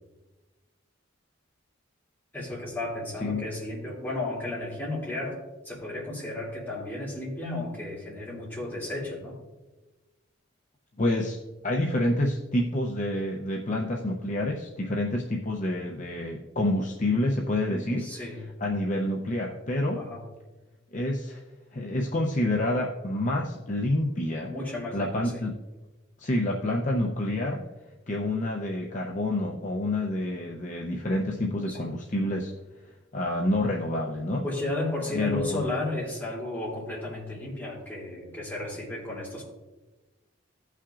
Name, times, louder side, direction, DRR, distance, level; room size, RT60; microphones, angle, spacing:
voice 1, 2.3-5.4 5.6-9.4 17.7-18.4 19.9-20.2 24.4-25.4 31.7-31.9 34.4-39.4, left 2 dB, 10° left, -6 dB, 2.9 m, -34 dB
voice 2, 11.0-11.4 11.6-18.1 18.6-20.0 20.9-21.4 21.7-24.5 24.9-25.5 26.2-27.6 28.1-32.5 33.1-34.4 35.1-35.6, left 1 dB, 40° left, 0 dB, 0.6 m, -28 dB
16.0 x 5.7 x 2.5 m, 1.2 s
head